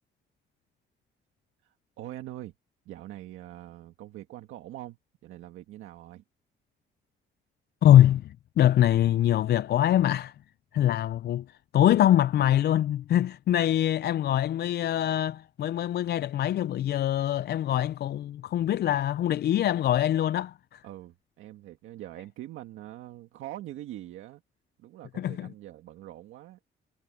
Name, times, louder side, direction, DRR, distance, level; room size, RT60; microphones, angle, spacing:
voice 1, 1.6-2.5 2.8-6.2 20.8-24.4 24.8-26.6, right 14 dB, 90° right, 1.7 m, -43 dB
voice 2, 7.8-10.3 10.7-20.8 25.2-25.5, left 12 dB, 55° left, 0.4 m, -23 dB
cardioid pair, 90°, 20 cm